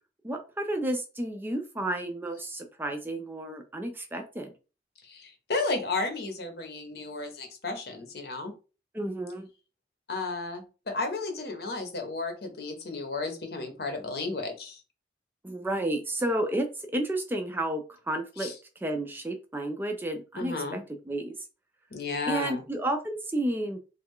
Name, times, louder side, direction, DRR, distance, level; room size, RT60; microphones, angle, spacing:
voice 1, 0.2-4.5 8.9-9.5 15.4-18.5 18.8-20.8 21.1-21.3 22.3-23.8, right 1 dB, 10° right, 4 dB, 0.3 m, -31 dB
voice 2, 5.0-8.5 10.1-14.8 18.4-18.5 20.4-20.8 21.9-22.6, left 3 dB, 60° left, 5 dB, 0.8 m, -33 dB
3.1 x 2.2 x 3.5 m, 0.33 s
head